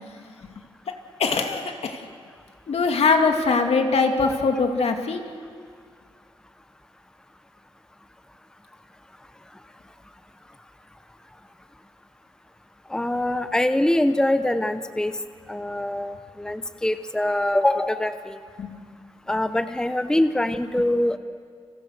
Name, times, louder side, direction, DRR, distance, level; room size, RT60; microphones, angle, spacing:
voice 1, 1.2-2.0 2.7-5.2 18.6-18.7, left 4 dB, 75° left, 4 dB, 2.6 m, -22 dB
voice 2, 12.9-15.1 15.5-18.4 19.3-21.2, left 1 dB, 5° left, 10 dB, 0.9 m, -23 dB
30.0 x 26.5 x 6.6 m, 2.1 s
wide cardioid pair, 115°, 11 cm